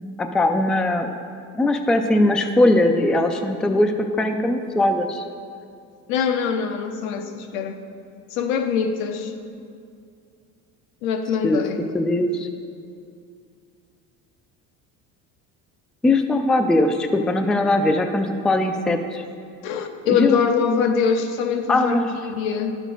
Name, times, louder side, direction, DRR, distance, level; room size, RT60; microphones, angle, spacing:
voice 1, 0.2-1.1 1.5-5.2 11.4-11.6 11.9-12.5 16.0-19.2 20.0-20.5 21.7-22.2, left 2 dB, ahead, 6 dB, 0.3 m, -20 dB
voice 2, 6.1-7.8 8.3-9.3 11.0-11.9 19.6-22.7, left 6 dB, 80° left, 6 dB, 0.8 m, -23 dB
10.5 x 6.3 x 3.9 m, 2.4 s
cardioid pair, 110°, 37 cm